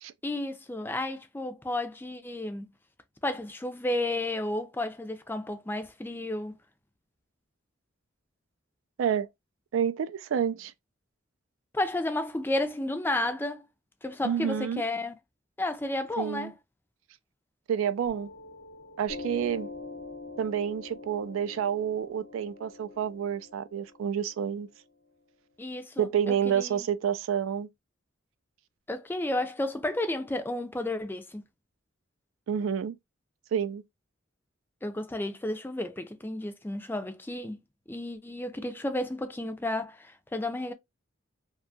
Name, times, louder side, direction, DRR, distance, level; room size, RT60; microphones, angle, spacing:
voice 1, 0.2-2.7 3.2-6.5 11.7-13.6 14.0-15.2 15.6-16.5 25.6-26.9 28.9-31.4 34.8-37.6 37.9-40.7, left 1 dB, 10° left, 0.3 m, -32 dB
voice 2, 9.7-10.7 14.2-14.8 16.2-16.5 17.7-18.3 19.0-19.7 20.4-24.7 26.0-27.7 32.5-32.9 33.5-33.8, right 8 dB, 80° right, 0.3 m, -29 dB
Piano, 18.1-25.1, left 3 dB, 85° left, 0.8 m, -44 dB
2.7 x 2.2 x 2.6 m
head